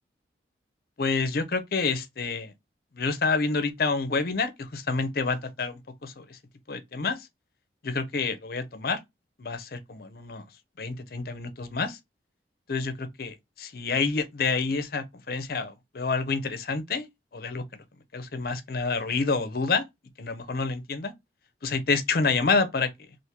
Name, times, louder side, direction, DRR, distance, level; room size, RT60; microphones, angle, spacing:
voice 1, 1.0-2.5 2.9-6.4 6.7-7.3 7.8-9.0 9.4-10.4 10.8-12.0 12.7-17.6 18.1-19.9 20.2-21.1 21.6-22.9, left 4 dB, 55° left, 0.6 m, -28 dB
3.5 x 2.5 x 2.8 m
head